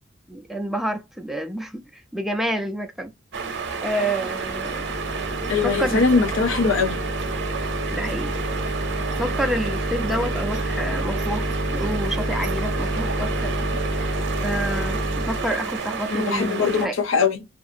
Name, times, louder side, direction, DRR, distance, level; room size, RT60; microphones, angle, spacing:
voice 1, 0.3-3.1 3.8-4.9 5.6-6.0 7.9-8.3 9.1-13.5 14.4-16.9, right 1 dB, ahead, 0.3 m, -28 dB
sound 1, 3.3-16.9, right 5 dB, 60° right, 0.7 m, -31 dB
sound 2, 4.4-15.6, right 1 dB, 75° left, 1.1 m, -28 dB
voice 2, 5.5-7.0 16.1-17.5, left 4 dB, 90° left, 0.6 m, -21 dB
2.7 x 2.4 x 2.5 m
head